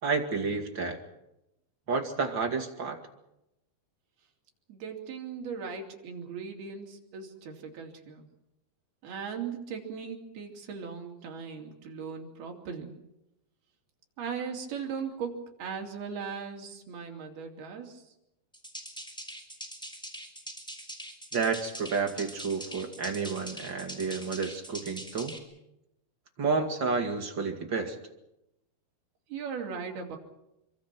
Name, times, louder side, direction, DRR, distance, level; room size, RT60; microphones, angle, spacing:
voice 1, 0.0-1.0 1.9-3.0 21.3-25.3 26.4-28.0, right 4 dB, 35° right, 4 dB, 2.1 m, -30 dB
voice 2, 4.7-8.3 9.0-13.0 14.2-18.0 29.3-30.2, right 6 dB, 60° right, 2 dB, 4.6 m, -38 dB
sound 1, 18.5-25.4, equal, ahead, 2.9 m, -43 dB
26.5 x 24.5 x 6.1 m, 0.87 s
omnidirectional pair, 5.3 m